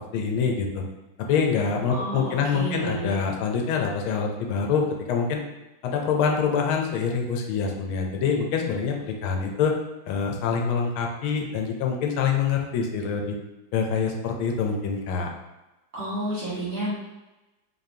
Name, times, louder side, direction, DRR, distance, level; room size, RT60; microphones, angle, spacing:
voice 1, 0.1-0.8 1.3-5.4 5.8-9.7 10.1-13.4 13.7-15.3, left 6 dB, 85° left, 2 dB, 1.5 m, -25 dB
voice 2, 1.9-3.2 15.9-16.9, right 1 dB, 35° right, -9 dB, 1.3 m, -31 dB
4.2 x 3.1 x 2.7 m, 1.0 s
omnidirectional pair, 2.2 m